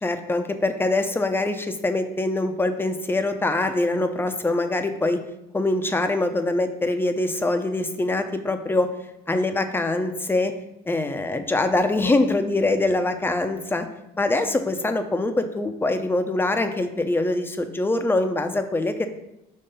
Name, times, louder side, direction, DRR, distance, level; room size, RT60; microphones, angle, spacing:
voice 1, 0.0-5.2 5.5-8.9 9.3-10.5 10.9-13.9 14.2-19.1, left 2 dB, 15° left, 8 dB, 0.6 m, -23 dB
5.5 x 3.2 x 5.5 m, 0.90 s
cardioid pair, 110°, 17 cm